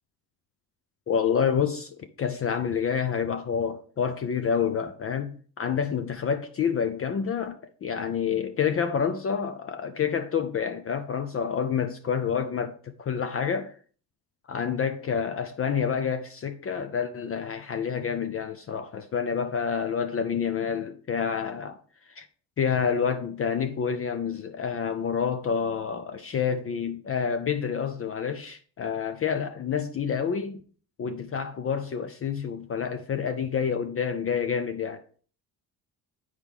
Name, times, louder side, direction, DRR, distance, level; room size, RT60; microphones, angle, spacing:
voice 1, 1.1-13.7 14.5-21.8 22.2-22.3 22.6-30.6 31.0-35.0, left 7 dB, 35° left, 0.5 m, -28 dB
8.4 x 4.7 x 3.6 m
cardioid pair, 130°, 40 cm